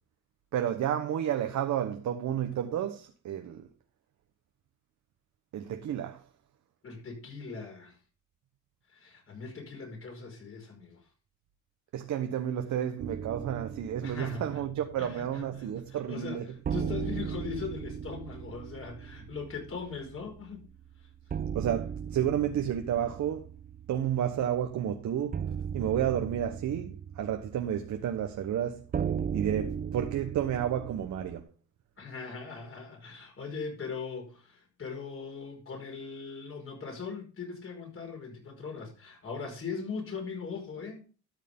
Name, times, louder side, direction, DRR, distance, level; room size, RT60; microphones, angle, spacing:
voice 1, 0.5-3.7 5.5-6.2 11.9-16.4 21.5-23.5 23.9-25.4 25.7-28.8 29.3-31.5, right 10 dB, 70° right, 1.1 m, -31 dB
voice 2, 6.8-8.0 8.9-11.1 14.0-14.6 15.0-20.7 21.0-21.1 32.0-41.0, left 5 dB, 45° left, 5.1 m, -40 dB
sound 1, 13.0-15.8 16.1-16.2 16.6-31.4, right 7 dB, 30° right, 0.5 m, -38 dB
13.0 x 6.5 x 3.7 m
cardioid pair, 90°, 30 cm